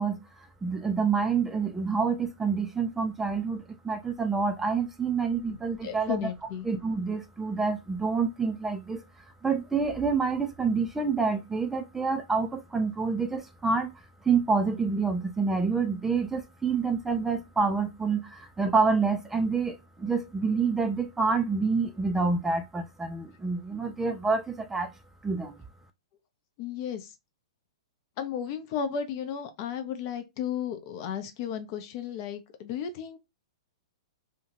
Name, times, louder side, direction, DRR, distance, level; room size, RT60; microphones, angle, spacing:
voice 1, 0.0-6.3 6.6-9.0 9.4-13.9 14.2-24.9 25.2-25.6, right 4 dB, 10° right, 0.4 m, -27 dB
voice 2, 5.5-6.7 26.6-27.1 28.2-33.2, left 8 dB, 45° left, 0.6 m, -34 dB
2.7 x 2.3 x 2.8 m
hypercardioid pair, 115°, 3 cm